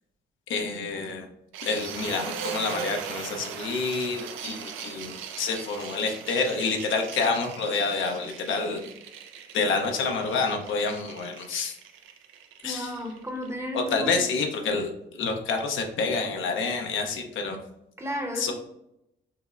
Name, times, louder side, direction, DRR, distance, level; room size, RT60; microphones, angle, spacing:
voice 1, 0.5-1.3 1.6-8.9 9.5-11.7 12.6-12.9 13.7-17.6 18.4-18.5, left 4 dB, 80° left, 3 dB, 0.7 m, -28 dB
sound 1, 1.5-13.5, right 7 dB, 90° right, 0.4 m, -39 dB
voice 2, 12.6-14.2 18.0-18.5, equal, 15° right, 3 dB, 0.7 m, -33 dB
5.5 x 2.0 x 2.4 m, 0.82 s
cardioid pair, 90°, 20 cm